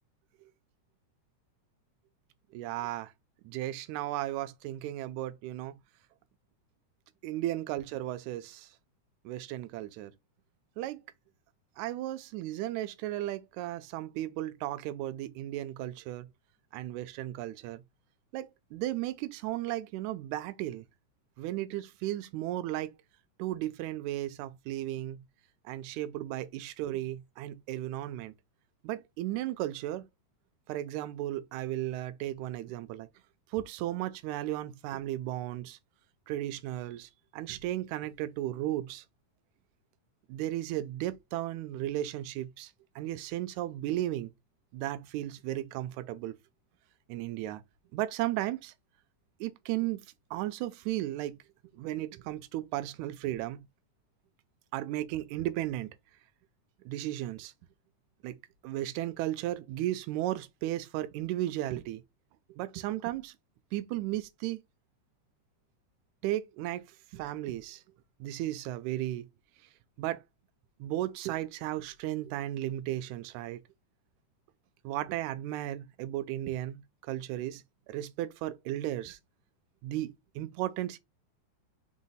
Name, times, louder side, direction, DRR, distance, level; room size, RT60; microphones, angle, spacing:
voice 1, 2.5-3.1 3.4-5.8 7.2-8.7 9.3-10.1 10.8-11.0 11.8-16.3 16.7-17.8 18.3-20.9 21.4-22.9 23.4-25.2 25.7-28.3 28.8-30.1 30.7-33.1 33.5-35.8 36.3-39.0 40.3-44.3 44.7-46.4 47.1-47.6 47.9-48.7 49.4-50.0 50.3-51.4 51.7-53.7 54.7-55.9 56.9-57.5 58.2-58.4 58.6-62.0 62.5-63.3 63.7-64.6 66.2-66.9 67.1-67.8 68.2-69.3 70.0-70.2 70.8-73.6 74.8-79.2 79.8-81.0, right 14 dB, 80° right, 1.8 m, -35 dB
4.9 x 2.0 x 3.9 m
omnidirectional pair, 3.6 m